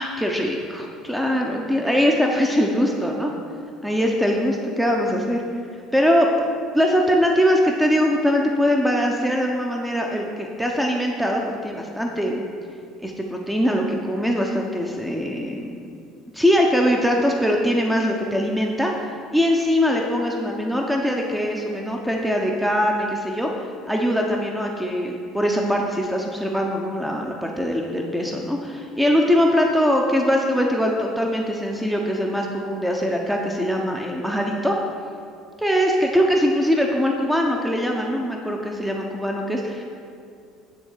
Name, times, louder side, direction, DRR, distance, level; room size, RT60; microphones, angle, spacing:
voice 1, 0.0-3.3 3.8-5.4 5.9-6.5 6.7-12.4 13.0-15.8 16.3-18.9 19.3-23.5 23.9-34.8 35.6-39.8, equal, 5° right, 1 dB, 1.0 m, -22 dB
10.0 x 3.7 x 7.3 m, 2.4 s
hypercardioid pair, 60°, 0 cm